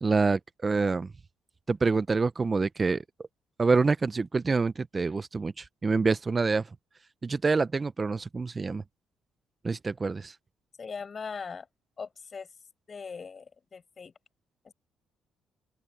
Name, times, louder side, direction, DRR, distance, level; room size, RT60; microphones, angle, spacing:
voice 1, 0.0-1.1 1.7-3.0 3.6-6.6 7.2-8.8 9.6-10.3, right 4 dB, 25° right, 0.5 m, -26 dB
voice 2, 10.8-11.7 12.0-12.5 12.9-14.1 14.6-14.7, left 5 dB, 35° left, 6.5 m, -40 dB
open air
cardioid pair, 100°, 0 cm